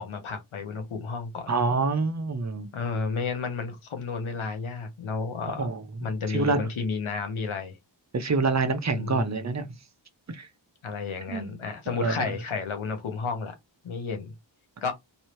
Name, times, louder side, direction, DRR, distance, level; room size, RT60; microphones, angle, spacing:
voice 1, 0.0-1.5 2.7-5.7 6.0-7.8 8.9-9.5 10.8-13.5 13.8-14.3 14.8-14.9, left 4 dB, 90° left, 1.0 m, -32 dB
voice 2, 1.5-2.7 5.6-5.8 6.3-6.6 8.1-9.7 10.3-10.5 11.3-11.5 12.0-12.1, right 4 dB, 35° right, 0.7 m, -26 dB
3.1 x 2.7 x 3.1 m
wide cardioid pair, 70°, 48 cm